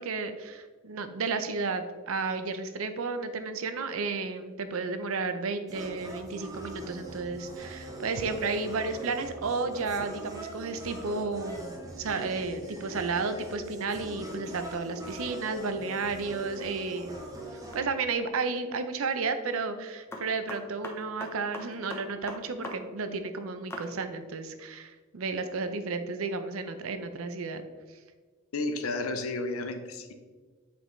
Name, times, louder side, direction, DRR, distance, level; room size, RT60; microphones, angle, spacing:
voice 1, 0.0-17.2 17.5-27.6 27.9-28.0, right 4 dB, 75° right, 9 dB, 0.6 m, -32 dB
sound 1, 5.7-17.8, right 1 dB, 15° right, 1.0 m, -42 dB
sound 2, 17.7-18.1 20.1-22.8 23.0-23.1 23.7-23.9, left 2 dB, 10° left, 0.8 m, -40 dB
voice 2, 28.5-30.1, left 2 dB, 80° left, 7 dB, 0.7 m, -32 dB
7.7 x 5.0 x 3.2 m, 1.4 s
head